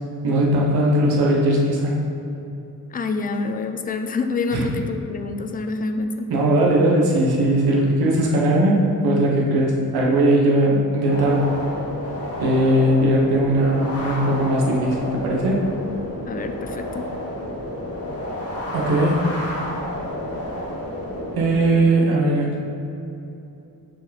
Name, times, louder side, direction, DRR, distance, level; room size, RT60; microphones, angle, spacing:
voice 1, 0.2-2.0 4.5-4.6 6.3-11.5 12.4-15.6 18.7-19.2 21.4-22.7, right 1 dB, 90° right, -2 dB, 1.3 m, -19 dB
voice 2, 2.9-6.3 16.3-17.1, left 3 dB, 25° left, 6 dB, 0.4 m, -27 dB
sound 1, 11.1-21.8, left 1 dB, 40° left, 1.5 m, -31 dB
6.4 x 5.1 x 4.1 m, 2.9 s
cardioid pair, 125°, 36 cm